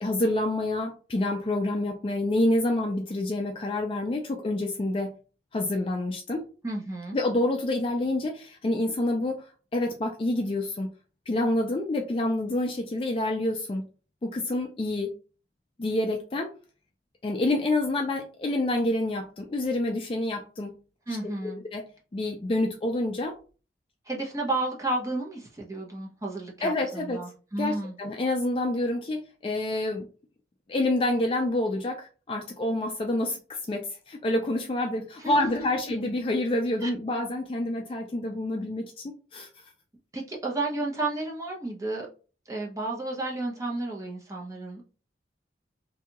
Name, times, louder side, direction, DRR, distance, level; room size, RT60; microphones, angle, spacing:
voice 1, 0.0-5.1 5.5-6.4 7.1-9.4 9.7-10.9 11.3-13.8 14.2-15.1 15.8-16.5 17.2-20.7 21.4-21.8 22.1-23.3 26.6-27.2 27.6-30.0 30.7-39.5, left 1 dB, 30° left, 2 dB, 0.3 m, -27 dB
voice 2, 6.6-7.2 21.1-21.6 24.1-27.9 35.2-35.5 36.8-36.9 40.1-42.1 42.5-44.8, right 2 dB, 20° right, -2 dB, 0.7 m, -32 dB
2.6 x 2.3 x 2.9 m, 0.36 s
head